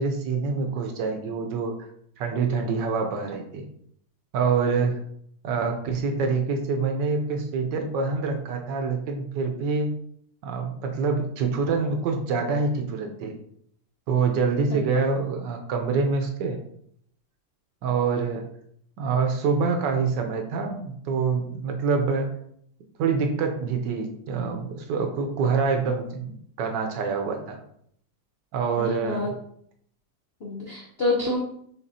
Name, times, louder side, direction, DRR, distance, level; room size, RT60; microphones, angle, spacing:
voice 1, 0.0-1.9 2.2-3.7 4.3-5.0 5.4-9.9 10.4-13.3 14.1-16.6 17.8-18.5 19.0-22.3 23.0-27.6 28.5-29.3, right 4 dB, 70° right, 4 dB, 1.3 m, -26 dB
voice 2, 28.8-29.3 30.4-31.4, left 2 dB, 55° left, -4 dB, 0.6 m, -27 dB
5.9 x 3.2 x 2.7 m, 0.67 s
omnidirectional pair, 2.1 m